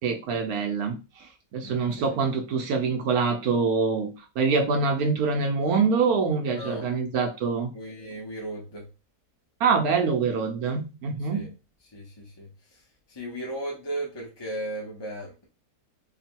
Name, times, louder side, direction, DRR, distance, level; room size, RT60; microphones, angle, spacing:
voice 1, 0.0-7.7 9.6-11.5, right 5 dB, 70° right, 1.1 m, -25 dB
voice 2, 1.6-2.2 6.4-6.9 7.7-8.9 11.3-11.5 11.9-12.8 13.1-15.5, right 1 dB, 25° left, 0.6 m, -36 dB
3.7 x 2.3 x 4.4 m
omnidirectional pair, 1.8 m